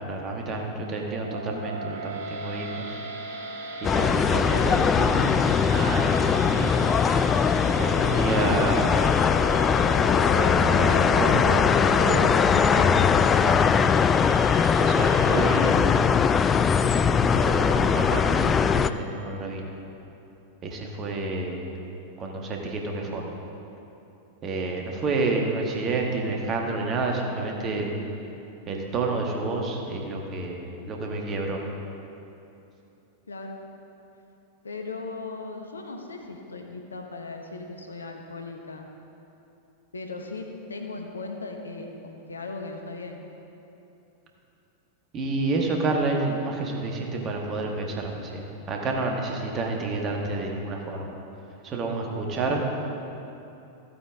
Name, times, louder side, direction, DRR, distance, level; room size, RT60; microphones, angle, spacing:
voice 1, 0.0-3.0 3.8-6.9 7.6-8.9 10.3-12.9 13.2-13.7 14.7-16.1 17.0-19.7 20.6-21.7 22.2-23.4 24.4-27.9 28.7-31.6 45.1-51.2 51.6-52.6, right 3 dB, 30° right, 1 dB, 1.6 m, -29 dB
sound 1, 1.0-19.3, right 1 dB, 55° right, 1.1 m, -37 dB
sound 2, 3.8-18.9, left 6 dB, 20° left, 0.3 m, -21 dB
voice 2, 33.3-33.6 34.6-38.9 39.9-43.2, left 3 dB, 75° left, 3 dB, 1.0 m, -37 dB
14.5 x 8.6 x 3.7 m, 2.9 s
figure-of-eight pair, 90°, 0 cm